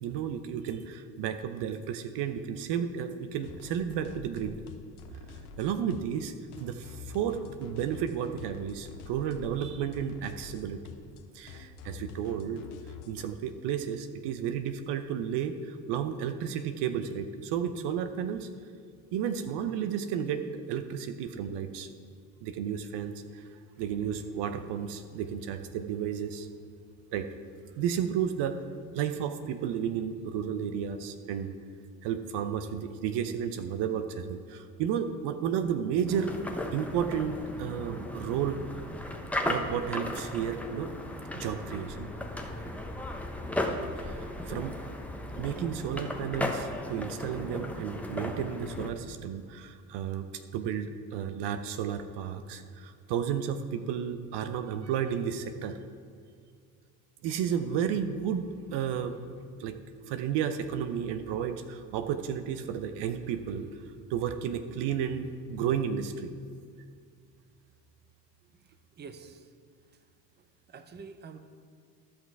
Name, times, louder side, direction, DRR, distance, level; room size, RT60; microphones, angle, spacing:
voice 1, 0.0-4.6 5.6-6.3 6.6-10.8 11.3-12.6 13.1-18.5 19.1-21.9 22.4-23.4 23.8-26.5 27.1-27.3 27.8-28.6 28.9-31.5 32.0-36.4 36.7-38.6 39.5-40.9 41.3-42.1 44.0-44.8 45.4-55.8 57.2-59.2 59.6-59.8 60.1-63.7 64.1-66.3, right 8 dB, 60° right, 9 dB, 0.8 m, -32 dB
sound 1, 3.4-13.3, left 6 dB, 70° left, 1.0 m, -47 dB
sound 2, 36.1-48.9, left 1 dB, 5° left, 1.0 m, -36 dB
voice 2, 69.0-69.5 70.7-71.4, right 5 dB, 20° right, 9 dB, 0.7 m, -46 dB
13.0 x 6.0 x 4.7 m, 2.2 s
hypercardioid pair, 65°, 46 cm